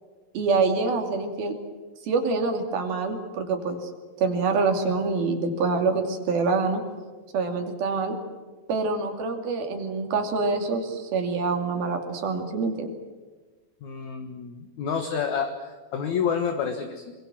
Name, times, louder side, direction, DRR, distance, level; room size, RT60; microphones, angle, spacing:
voice 1, 0.3-1.5 2.0-3.9 4.2-6.8 7.3-8.2 8.7-12.9, right 4 dB, 80° right, 4 dB, 4.5 m, -26 dB
voice 2, 13.8-17.1, left 6 dB, 60° left, 5 dB, 2.6 m, -29 dB
25.5 x 23.5 x 7.5 m, 1.4 s
omnidirectional pair, 4.3 m